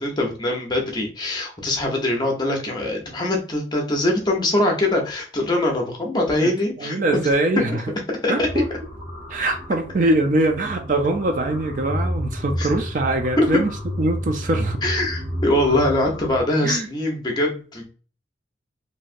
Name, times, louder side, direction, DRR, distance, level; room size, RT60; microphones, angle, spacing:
voice 1, 0.0-7.2 7.7-7.8 8.1-8.5 12.6-12.7 13.4-13.6 14.8-17.9, left 1 dB, 25° left, 0.7 m, -22 dB
voice 2, 6.8-7.8 8.3-8.7 9.3-13.7 14.0-14.8 16.6-16.9, right 2 dB, 45° right, 0.4 m, -22 dB
sound 1, 8.4-16.4, equal, 25° right, 1.0 m, -31 dB
3.2 x 2.7 x 2.5 m
head